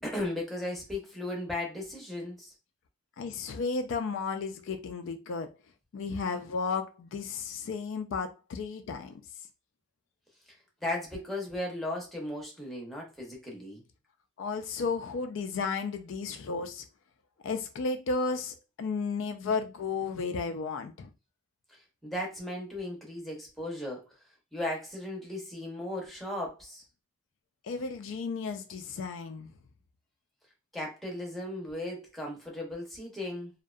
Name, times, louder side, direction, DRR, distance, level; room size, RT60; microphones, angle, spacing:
voice 1, 0.0-2.5 10.8-13.8 21.7-24.1 24.5-26.8 30.7-33.5, left 1 dB, ahead, 0.6 m, -36 dB
voice 2, 3.2-5.5 5.9-9.2 14.4-16.8 17.4-21.1 27.7-29.5, left 4 dB, 60° left, 0.3 m, -33 dB
2.6 x 2.1 x 2.3 m
head